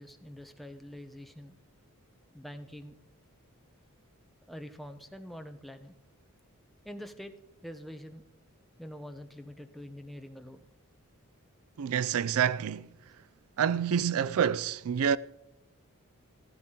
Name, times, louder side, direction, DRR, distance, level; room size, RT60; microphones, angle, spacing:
voice 1, 0.0-1.6 2.3-3.0 4.5-6.0 6.8-7.3 7.6-8.2 8.8-10.6, equal, ahead, 0.7 m, -45 dB
voice 2, 11.8-12.9 13.6-15.2, right 8 dB, 75° right, 0.4 m, -27 dB
15.0 x 13.0 x 3.7 m
head